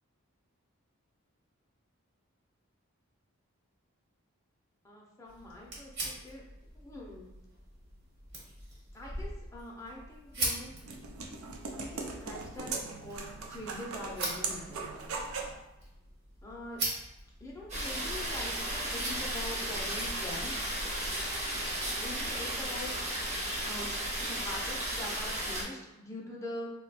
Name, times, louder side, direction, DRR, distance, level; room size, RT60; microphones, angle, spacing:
voice 1, 4.8-6.4 6.7-7.3 8.9-10.7 11.7-15.2 16.4-16.8 17.4-20.7 21.9-22.9 23.6-26.7, left 1 dB, 15° left, -3 dB, 0.5 m, -44 dB
sound 1, 5.3-22.0, right 1 dB, 50° right, 1.1 m, -42 dB
sound 2, 10.3-15.6, right 4 dB, 75° right, 0.5 m, -39 dB
sound 3, 17.7-25.6, right 1 dB, 30° right, 0.8 m, -34 dB
2.7 x 2.2 x 4.0 m, 0.99 s
head